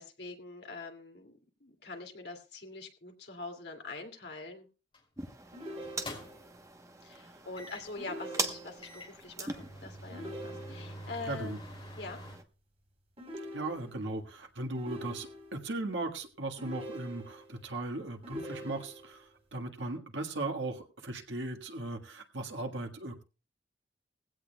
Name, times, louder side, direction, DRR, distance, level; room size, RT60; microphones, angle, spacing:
voice 1, 0.0-4.7 7.0-11.6 12.0-12.2, left 3 dB, 65° left, 3 dB, 2.4 m, -44 dB
sound 1, 4.9-5.2 5.8-6.6 7.6-8.0 8.5-8.6 8.8-12.4, equal, 30° left, 2.9 m, -46 dB
sound 2, 5.2-12.4, right 3 dB, 15° right, 1.0 m, -42 dB
sound 3, 5.5-6.6 8.0-9.0 10.1-11.1 13.2-14.2 14.8-15.7 16.6-17.6 18.2-19.2, equal, 35° right, 4.0 m, -45 dB
voice 2, 11.2-11.6 13.5-23.2, right 2 dB, 85° right, 4 dB, 1.6 m, -37 dB
19.5 x 16.0 x 2.3 m, 0.33 s
head